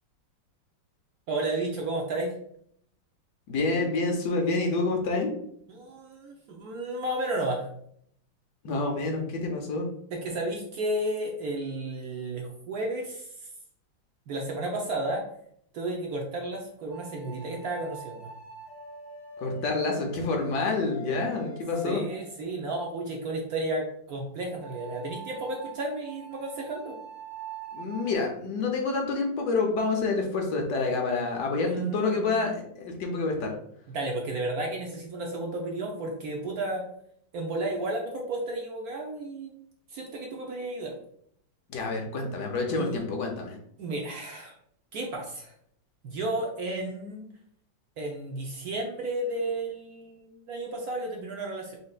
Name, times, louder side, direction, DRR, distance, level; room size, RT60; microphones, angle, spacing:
voice 1, 1.3-2.3 5.7-7.7 10.1-13.3 14.3-15.2 15.7-18.3 21.8-27.0 31.6-32.5 33.9-36.8 37.3-39.5 39.9-40.9 42.7-43.0 43.8-44.5 44.9-45.5 46.0-47.3 48.0-51.8, right 2 dB, 60° right, 0 dB, 1.1 m, -32 dB
voice 2, 3.5-5.3 8.6-9.9 19.4-22.0 27.7-33.5 41.7-43.6, left 3 dB, 65° left, 1 dB, 1.3 m, -28 dB
sound 1, 16.9-22.7 24.6-28.1, right 4 dB, 35° right, 1.4 m, -44 dB
5.2 x 3.7 x 2.4 m, 0.67 s
omnidirectional pair, 2.1 m